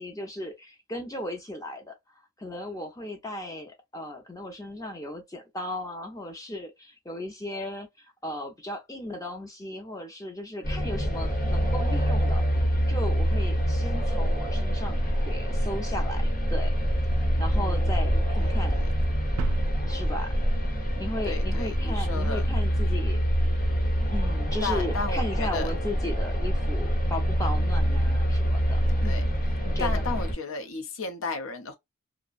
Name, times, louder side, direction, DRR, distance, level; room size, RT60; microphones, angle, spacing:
voice 1, 0.0-12.4 12.9-16.7 17.4-18.8 19.8-20.3 21.0-23.2 24.1-29.3 29.6-30.2, left 1 dB, 15° left, 0.5 m, -36 dB
sound 1, 10.6-30.3, equal, 45° left, 1.0 m, -25 dB
voice 2, 17.5-18.1 18.4-18.9 21.2-22.5 24.6-25.7 29.0-29.2 29.8-31.8, left 3 dB, 70° left, 0.6 m, -34 dB
sound 2, 19.4-21.4, right 7 dB, 80° right, 0.3 m, -37 dB
2.5 x 2.1 x 2.3 m
head